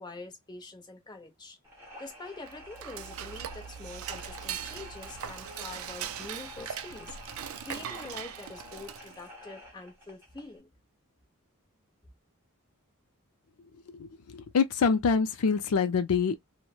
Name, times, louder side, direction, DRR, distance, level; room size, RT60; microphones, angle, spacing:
voice 1, 0.0-1.6 2.0-7.2 7.6-10.7, left 3 dB, 20° left, 0.7 m, -45 dB
sound 1, 1.6-10.6, left 1 dB, 10° right, 1.1 m, -49 dB
Dishes pots and pans / Cutlery silverware, 2.4-9.3, right 9 dB, 65° right, 0.3 m, -40 dB
voice 2, 13.9-16.4, left 5 dB, 75° left, 0.4 m, -26 dB
3.1 x 2.1 x 2.2 m
head